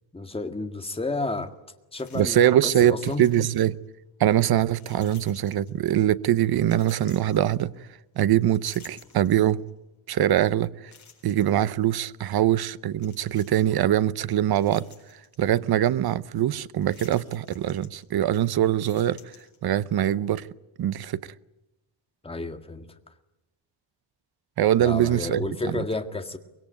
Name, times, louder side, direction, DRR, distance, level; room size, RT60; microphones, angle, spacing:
voice 1, 0.1-1.5 1.9-2.5 2.8-3.3 22.2-22.9 24.8-26.4, left 3 dB, 10° left, 1.8 m, -31 dB
sound 1, 1.4-1.5 1.9-2.7 2.9-3.9 4.8-6.0 6.6-8.0 8.4-9.7 10.2-10.3 10.9-11.7 13.0-13.8 14.3-15.4 16.8-18.3 18.7-19.9, left 5 dB, 35° left, 7.1 m, -52 dB
voice 2, 2.1-3.8 4.2-7.7 8.2-9.6 10.1-10.9 11.2-14.9 15.4-19.2 19.6-20.5 20.8-21.3 24.6-25.8, right 11 dB, 55° right, 0.8 m, -23 dB
24.5 x 22.0 x 9.2 m
cardioid pair, 150°, 46 cm